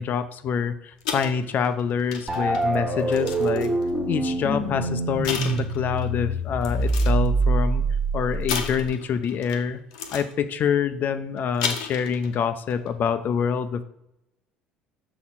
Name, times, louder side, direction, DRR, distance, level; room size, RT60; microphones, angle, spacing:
voice 1, 0.0-3.7 4.1-7.8 8.1-9.8 10.1-13.8, left 7 dB, 45° left, 11 dB, 0.6 m, -26 dB
sound 1, 1.0-3.9 4.7-4.8 5.2-6.1 6.6-7.3 8.5-9.6 9.9-10.3 11.4-12.4 12.7-12.9, left 7 dB, 75° left, 0.9 m, -33 dB
sound 2, 2.3-8.9, right 2 dB, 20° right, 1.4 m, -25 dB
6.0 x 4.0 x 6.1 m, 0.82 s
figure-of-eight pair, 60°, 4 cm